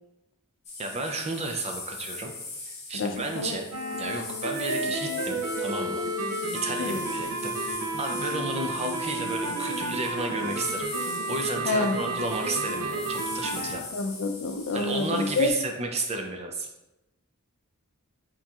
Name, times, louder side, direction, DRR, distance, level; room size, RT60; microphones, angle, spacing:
sound 1, 0.6-15.5, left 3 dB, 30° left, 1.1 m, -41 dB
voice 1, 0.8-2.3 2.9-3.7 4.0-6.0 6.6-13.8 14.7-16.7, right 2 dB, 30° right, 4 dB, 0.4 m, -33 dB
voice 2, 2.9-3.6 6.8-7.0 11.6-12.0 13.9-15.5, left 3 dB, 60° left, 5 dB, 0.4 m, -28 dB
sound 2, 3.7-13.8, right 2 dB, 80° right, 0.6 m, -31 dB
4.3 x 3.8 x 2.3 m, 0.96 s
head